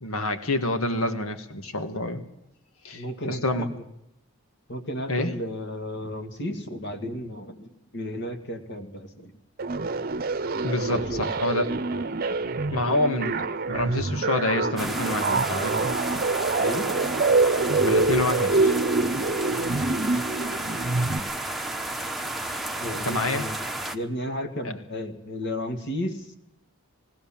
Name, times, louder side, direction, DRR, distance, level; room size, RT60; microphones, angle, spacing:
voice 1, 0.0-2.2 2.8-3.7 5.1-5.3 10.6-12.3 12.7-15.7 17.8-18.7 23.0-23.5, left 2 dB, 85° left, 8 dB, 1.8 m, -28 dB
voice 2, 2.9-3.7 4.7-9.3 10.8-11.3 12.2-12.4 16.6-16.9 22.8-23.6 23.9-26.3, left 1 dB, 55° left, 6 dB, 2.1 m, -33 dB
sound 1, 9.6-21.2, right 3 dB, 45° right, 0.8 m, -25 dB
sound 2, 14.8-24.0, right 1 dB, ahead, 1.0 m, -32 dB
20.0 x 18.0 x 7.3 m, 0.82 s
head